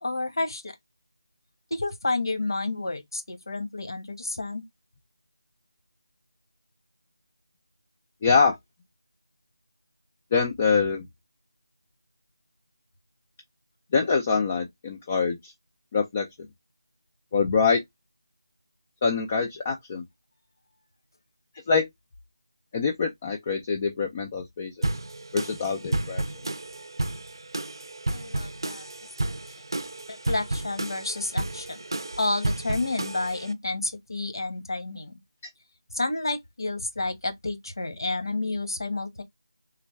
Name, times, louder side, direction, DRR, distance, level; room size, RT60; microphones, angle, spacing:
voice 1, 0.0-0.8 1.7-4.6 28.1-28.8 29.2-29.4 30.1-31.8 32.2-35.1 35.9-39.2, left 2 dB, 60° left, 1.1 m, -30 dB
voice 2, 8.2-8.6 10.3-11.1 13.9-15.5 15.9-16.3 17.3-17.8 19.0-20.0 21.7-21.9 22.7-24.9 25.3-26.2, left 5 dB, 15° left, 0.3 m, -24 dB
sound 1, 24.8-33.5, right 2 dB, 65° right, 0.5 m, -32 dB
3.4 x 2.2 x 3.0 m
figure-of-eight pair, 175°, 3 cm